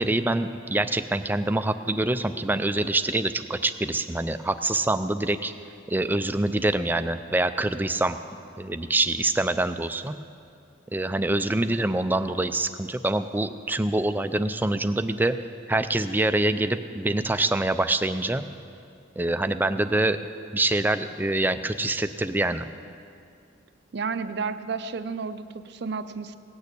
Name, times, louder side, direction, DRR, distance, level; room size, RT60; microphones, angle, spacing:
voice 1, 0.0-5.5 5.9-8.2 8.6-10.1 10.9-15.4 15.7-18.4 19.2-20.2 20.5-22.7, right 2 dB, 10° right, 10 dB, 0.4 m, -25 dB
voice 2, 23.9-26.4, right 5 dB, 60° right, 11 dB, 0.5 m, -31 dB
17.5 x 6.7 x 8.3 m, 2.4 s
head